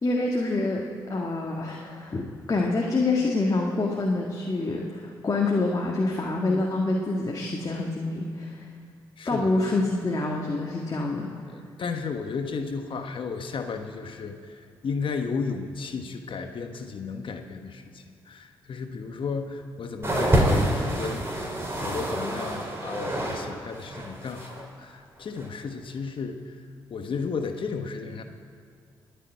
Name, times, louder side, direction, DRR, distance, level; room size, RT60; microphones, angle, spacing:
voice 1, 0.0-8.7 9.3-11.3, left 2 dB, 35° left, -1 dB, 1.9 m, -26 dB
voice 2, 9.2-9.5 11.5-26.6 26.9-28.2, left 5 dB, 55° left, 6 dB, 1.2 m, -34 dB
sound 1, 20.0-23.5 23.7-24.6 25.4-25.5, right 1 dB, 25° right, 4.5 m, -27 dB
20.5 x 6.9 x 9.2 m, 2.3 s
supercardioid pair, 50°, 10 cm